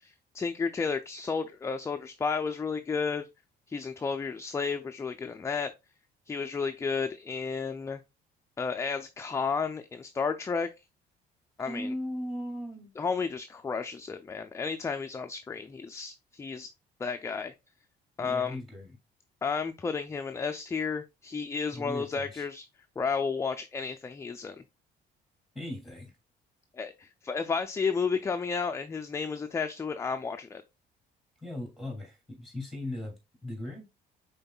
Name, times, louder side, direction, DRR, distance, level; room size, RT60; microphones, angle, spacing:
voice 1, 0.0-3.3 3.7-5.7 6.3-8.0 8.6-10.7 11.6-11.9 13.0-16.7 17.0-17.5 18.2-18.6 19.4-22.6 23.0-24.6 26.8-30.6, left 5 dB, 15° left, 0.4 m, -32 dB
voice 2, 11.7-12.9 18.2-19.0 21.7-22.4 25.5-26.1 31.4-33.1 33.4-33.9, left 1 dB, ahead, 2.5 m, -38 dB
5.3 x 3.9 x 2.3 m
cardioid pair, 110°, 17 cm